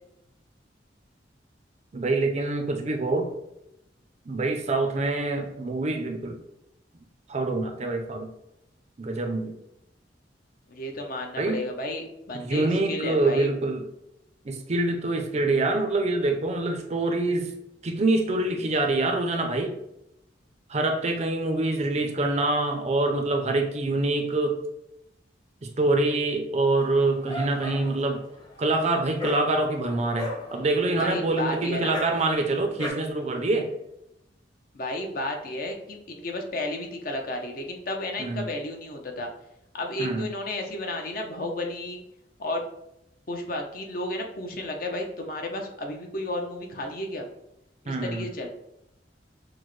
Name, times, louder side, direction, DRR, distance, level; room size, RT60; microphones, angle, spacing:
voice 1, 1.9-3.3 4.3-6.4 7.3-8.3 9.0-9.5 11.4-11.6 12.3-13.9 14.4-17.5 17.8-19.8 20.7-24.6 25.6-28.2 28.6-33.7 38.2-38.5 40.0-40.3 47.9-48.3, right 2 dB, 35° right, 4 dB, 0.5 m, -25 dB
voice 2, 10.7-13.5 31.0-32.0 34.7-39.3 39.7-42.0 42.4-42.6 43.3-47.3 48.0-48.5, left 1 dB, 50° left, 3 dB, 0.7 m, -32 dB
Dog, 26.8-32.9, left 1 dB, 25° left, 0.9 m, -38 dB
6.1 x 2.1 x 3.1 m, 0.83 s
head